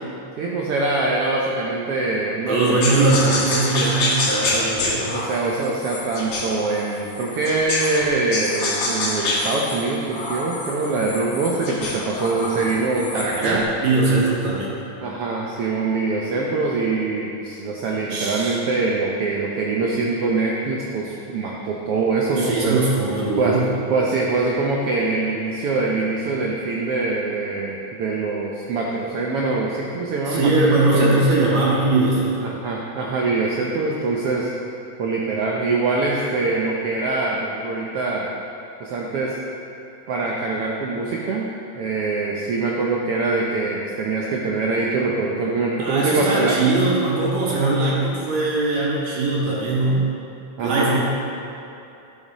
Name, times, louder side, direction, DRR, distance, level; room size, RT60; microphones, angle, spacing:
voice 1, 0.4-3.4 4.5-4.7 5.1-13.7 15.0-22.8 23.4-23.6 23.9-30.5 30.8-31.2 32.4-34.5 35.0-38.3 38.8-39.4 40.1-46.6 47.5-47.8 50.6-51.0, right 3 dB, 85° right, -2 dB, 1.3 m, -24 dB
voice 2, 2.5-5.1 12.5-12.7 13.0-14.7 18.1-18.6 22.4-23.7 30.3-32.5 45.8-50.0 50.6-51.0, right 2 dB, 60° right, -5 dB, 2.7 m, -21 dB
sound 1, 2.8-8.0 8.3-13.6, left 2 dB, 55° left, 2.1 m, -27 dB
12.5 x 7.3 x 4.1 m, 2.7 s
omnidirectional pair, 3.7 m